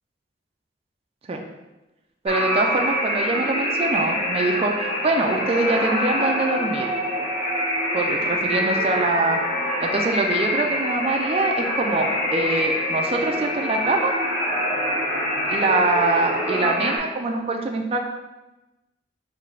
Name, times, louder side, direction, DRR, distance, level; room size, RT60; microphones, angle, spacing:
voice 1, 2.2-6.9 7.9-9.4 9.8-14.1 15.5-18.0, right 2 dB, 35° right, 2 dB, 0.4 m, -24 dB
sound 1, 2.3-17.0, left 1 dB, 35° left, 1.0 m, -25 dB
3.2 x 3.2 x 3.8 m, 1.0 s
head